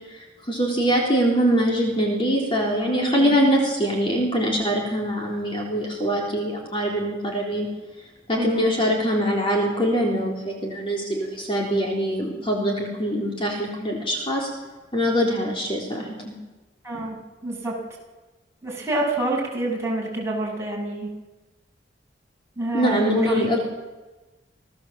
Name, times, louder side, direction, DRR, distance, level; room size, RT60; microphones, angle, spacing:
voice 1, 0.1-7.7 8.3-14.5 14.9-16.3 22.7-23.6, equal, 30° left, -1 dB, 3.8 m, -23 dB
voice 2, 2.9-3.3 8.3-8.7 16.8-17.1 17.4-17.7 18.6-21.1 22.6-23.6, right 1 dB, 15° right, -3 dB, 6.9 m, -26 dB
27.0 x 17.5 x 7.6 m, 1.2 s
head